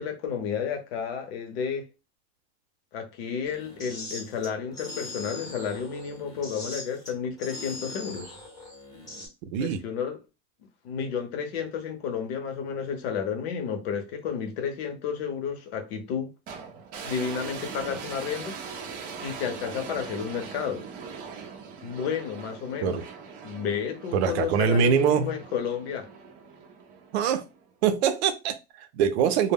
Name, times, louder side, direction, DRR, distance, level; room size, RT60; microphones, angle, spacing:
voice 1, 0.0-1.9 2.9-8.4 9.6-10.2 10.8-16.3 17.0-18.6 19.2-20.8 21.8-23.0 23.4-26.1, left 7 dB, 70° left, 0.8 m, -31 dB
sound 1, 3.5-9.3, left 2 dB, 10° left, 0.7 m, -41 dB
voice 2, 9.5-9.8 22.8-23.0 24.1-25.3 27.1-27.4 27.8-29.5, right 7 dB, 85° right, 0.6 m, -23 dB
sound 2, 16.5-27.7, right 6 dB, 30° right, 0.4 m, -41 dB
2.2 x 2.1 x 3.5 m
supercardioid pair, 160°, 32 cm